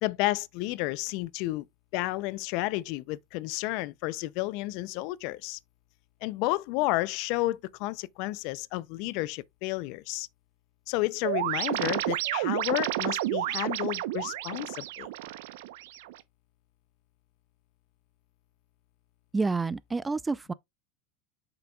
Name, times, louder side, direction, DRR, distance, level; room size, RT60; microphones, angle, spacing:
voice 1, 0.0-1.6 1.9-5.6 6.2-10.3 10.9-15.1, left 19 dB, 60° left, 0.4 m, -31 dB
sound 1, 11.2-16.2, right 15 dB, 75° right, 0.7 m, -31 dB
voice 2, 19.3-20.5, right 4 dB, 15° right, 0.4 m, -29 dB
7.5 x 5.9 x 2.3 m
supercardioid pair, 115°, 0 cm